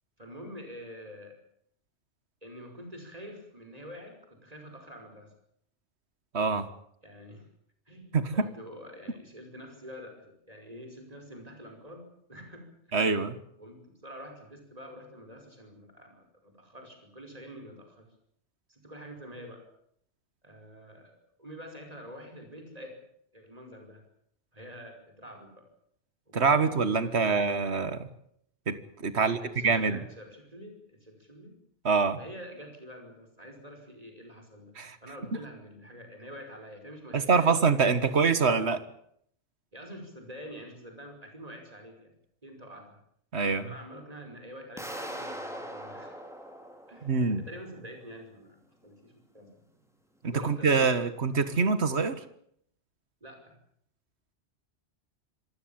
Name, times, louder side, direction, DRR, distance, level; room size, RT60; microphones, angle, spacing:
voice 1, 0.2-1.3 2.4-5.3 7.0-7.5 7.9-13.1 13.6-18.1 18.7-19.6 20.4-23.0 23.3-24.0 24.5-25.7 26.3-27.4 29.2-31.6 32.1-34.7 35.0-38.2 39.7-42.1 42.4-43.0 43.6-46.2 46.9-49.6 50.3-51.3 51.9-52.0 53.2-53.6, equal, 35° right, 4 dB, 5.5 m, -47 dB
voice 2, 6.3-6.7 8.1-8.5 12.9-13.4 26.3-28.1 28.7-29.4 29.6-30.0 31.9-32.2 34.8-35.0 37.1-38.8 43.3-43.7 47.0-47.4 50.2-52.2, right 4 dB, 70° right, 13 dB, 1.9 m, -25 dB
sound 1, 44.8-47.6, equal, ahead, 4.1 m, -41 dB
26.0 x 15.5 x 8.9 m, 0.70 s
omnidirectional pair, 1.2 m